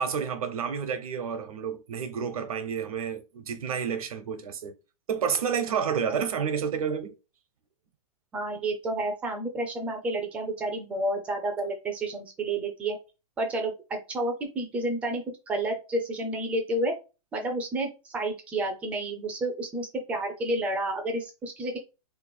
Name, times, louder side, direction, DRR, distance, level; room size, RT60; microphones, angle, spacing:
voice 1, 0.0-4.7 5.1-7.1, right 7 dB, 85° right, 1.0 m, -30 dB
voice 2, 8.3-13.0 13.4-16.9 17.3-21.8, right 1 dB, 5° right, 0.3 m, -30 dB
3.0 x 2.4 x 4.2 m
hypercardioid pair, 170°, 18 cm